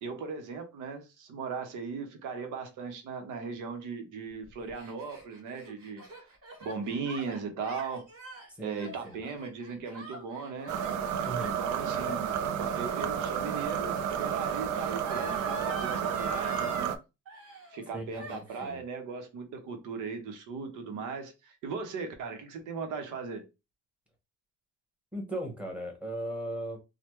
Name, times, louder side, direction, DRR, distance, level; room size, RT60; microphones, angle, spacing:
voice 1, 0.0-6.3 6.6-8.1 8.6-10.7 11.4-17.0 17.7-23.4, right 5 dB, 85° right, 0.9 m, -38 dB
Gasp, 4.4-16.9 17.3-17.9 18.1-18.8, equal, 50° right, 1.4 m, -45 dB
voice 2, 8.5-9.2 11.2-11.5 17.9-18.8 25.1-26.8, right 1 dB, 5° right, 1.3 m, -37 dB
sound 1, 10.7-17.0, right 8 dB, 70° right, 0.5 m, -31 dB
3.2 x 2.2 x 3.0 m
cardioid pair, 90°, 30 cm